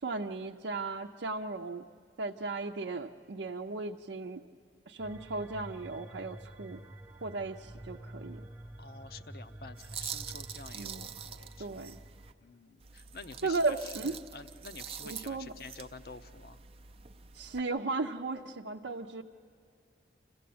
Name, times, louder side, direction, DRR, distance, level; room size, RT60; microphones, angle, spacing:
voice 1, 0.0-1.9 2.2-4.4 4.9-6.8 7.2-8.4 10.7-11.1 11.6-12.0 13.4-14.2 15.0-15.5 17.3-19.2, right 3 dB, 85° right, 1 dB, 0.7 m, -36 dB
sound 1, 5.0-12.3, right 1 dB, 10° right, 0.9 m, -48 dB
voice 2, 8.8-11.9 12.4-13.7 14.1-16.6, left 4 dB, 55° left, 11 dB, 0.7 m, -49 dB
sound 2, 9.8-12.3 12.8-17.6, right 8 dB, 30° right, 0.5 m, -45 dB
27.5 x 15.0 x 8.6 m, 2.4 s
head